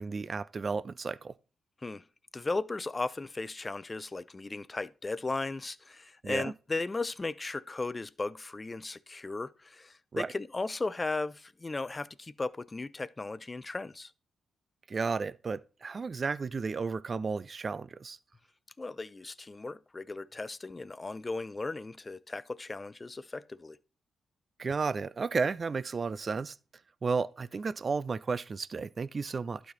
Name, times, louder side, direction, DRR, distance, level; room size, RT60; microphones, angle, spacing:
voice 1, 0.0-1.3 6.2-6.5 10.1-10.3 14.9-18.2 24.6-26.6 27.0-29.7, right 4 dB, 50° right, 0.3 m, -33 dB
voice 2, 2.3-14.1 18.8-23.8, left 3 dB, 30° left, 0.4 m, -36 dB
12.0 x 4.2 x 3.0 m
hypercardioid pair, 40°, 0 cm